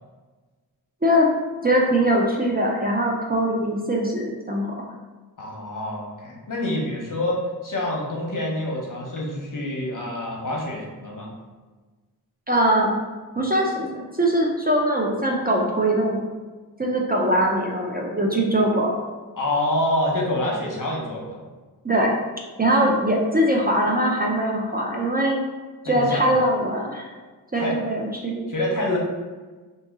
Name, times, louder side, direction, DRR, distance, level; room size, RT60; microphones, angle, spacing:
voice 1, 1.6-4.9 12.5-13.0 13.4-16.2 16.8-19.0 21.8-22.1 22.6-25.4 25.8-27.1 27.5-28.5, right 1 dB, 25° right, -1 dB, 0.4 m, -22 dB
voice 2, 5.4-11.3 19.4-21.4 25.8-26.3 27.5-27.8 28.5-29.0, left 1 dB, 55° left, -2 dB, 0.9 m, -27 dB
2.8 x 2.7 x 3.5 m, 1.3 s
wide cardioid pair, 75°, 39 cm